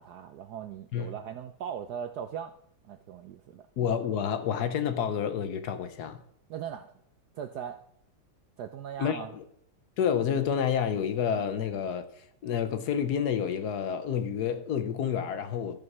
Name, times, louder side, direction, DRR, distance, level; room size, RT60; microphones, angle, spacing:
voice 1, 0.0-2.5 2.8-3.7 6.5-7.0 7.3-7.8 8.6-9.3, right 8 dB, 75° right, 0.9 m, -39 dB
voice 2, 3.8-6.2 9.0-9.4 10.0-15.8, left 8 dB, 65° left, 1.1 m, -29 dB
12.5 x 5.4 x 5.9 m
omnidirectional pair, 2.3 m